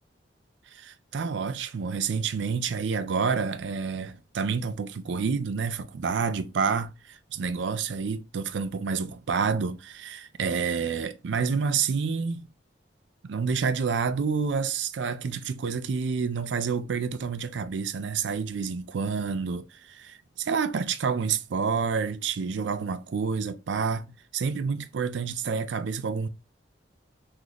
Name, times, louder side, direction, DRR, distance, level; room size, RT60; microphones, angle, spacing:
voice 1, 0.7-12.5 13.2-24.1 24.3-26.3, right 5 dB, 75° right, 0.4 m, -29 dB
3.0 x 2.5 x 3.9 m
head